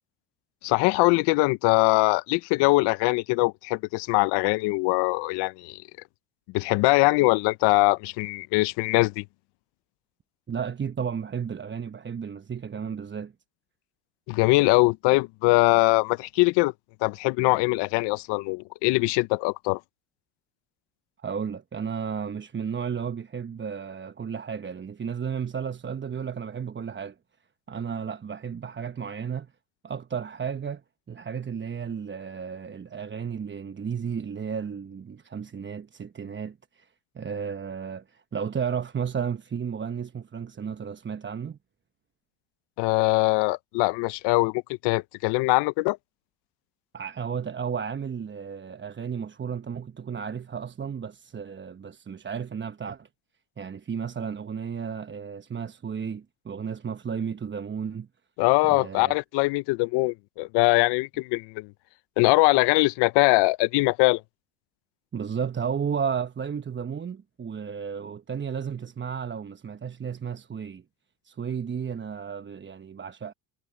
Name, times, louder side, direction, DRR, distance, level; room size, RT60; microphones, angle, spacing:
voice 1, 0.6-5.8 6.5-9.2 14.3-16.7 17.0-19.8 42.8-46.0 58.4-61.7 62.2-64.2, left 24 dB, 70° left, 1.0 m, -22 dB
voice 2, 10.5-13.3 21.2-27.2 27.7-29.5 29.8-30.8 31.1-41.6 46.9-53.1 53.6-58.1 58.6-59.1 65.1-70.8 71.2-73.3, right 7 dB, 25° right, 1.1 m, -33 dB
hypercardioid pair, 70°, 42 cm